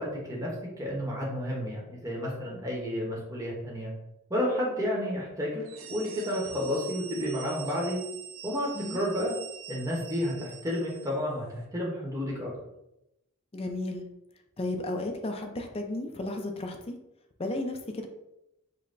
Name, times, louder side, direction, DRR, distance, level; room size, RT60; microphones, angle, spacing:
voice 1, 0.0-3.9 4.3-5.6 5.9-8.0 8.4-9.3 9.7-12.5, equal, 15° right, -3 dB, 0.9 m, -31 dB
sound 1, 5.6-11.3, right 8 dB, 75° right, 0.5 m, -45 dB
voice 2, 13.5-14.1 14.6-16.9 17.4-18.1, left 2 dB, 25° left, 4 dB, 0.5 m, -33 dB
5.3 x 2.1 x 3.9 m, 0.88 s
head